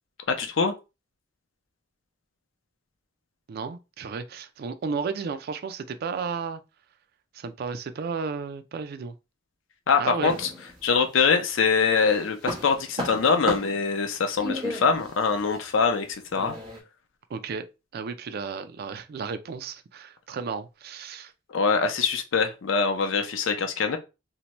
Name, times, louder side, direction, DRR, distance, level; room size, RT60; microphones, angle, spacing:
voice 1, 0.3-0.7 9.9-10.5 10.8-16.5 21.5-24.0, left 5 dB, 80° left, 0.5 m, -23 dB
voice 2, 3.5-6.6 7.3-9.2 10.0-10.4 17.3-17.6 17.9-21.3, right 5 dB, 55° right, 0.3 m, -33 dB
sound 1, 10.3-11.3 11.7-16.8, left 1 dB, 25° right, 1.0 m, -35 dB
2.7 x 2.1 x 2.9 m
head